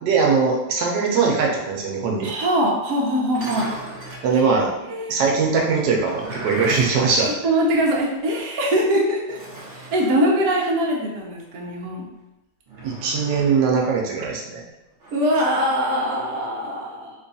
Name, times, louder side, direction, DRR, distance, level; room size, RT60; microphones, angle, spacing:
voice 1, 0.0-2.3 4.2-4.7 5.1-7.3 12.8-14.6, right 5 dB, 85° right, -1 dB, 1.3 m, -21 dB
voice 2, 2.2-3.7 4.4-4.5 4.9-5.2 7.4-9.4 9.7-12.0 15.1-17.1, equal, 65° right, -2 dB, 1.1 m, -22 dB
sound 1, 3.2-4.3 5.8-8.1 8.4-8.5 9.3-10.2 12.7-13.6 15.0-15.6, right 1 dB, 45° right, 0.8 m, -37 dB
3.2 x 2.3 x 3.9 m, 0.96 s
omnidirectional pair, 1.8 m